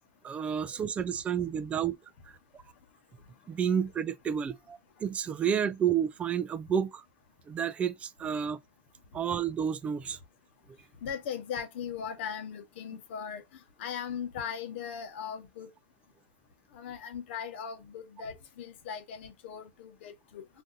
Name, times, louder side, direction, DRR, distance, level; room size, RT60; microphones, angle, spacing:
voice 1, 0.2-2.0 2.3-2.4 3.5-7.0 7.5-8.6 9.1-10.2, right 8 dB, 20° right, 0.3 m, -30 dB
voice 2, 11.0-13.4 13.8-15.7 16.7-20.4, left 7 dB, 75° left, 0.9 m, -38 dB
2.7 x 2.6 x 3.7 m
supercardioid pair, 140°, 6 cm